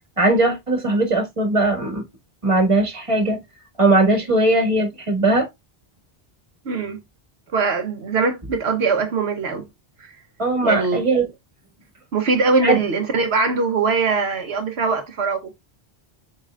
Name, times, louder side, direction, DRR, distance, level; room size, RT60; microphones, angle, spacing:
voice 1, 0.2-2.0 2.4-3.4 3.8-5.5 10.4-11.3 12.6-12.8, right 2 dB, 30° right, 1.9 m, -19 dB
voice 2, 6.6-7.0 7.5-9.7 10.0-10.1 10.6-11.0 12.1-15.5, right 4 dB, 80° right, 1.2 m, -21 dB
7.4 x 5.5 x 2.4 m
omnidirectional pair, 1.1 m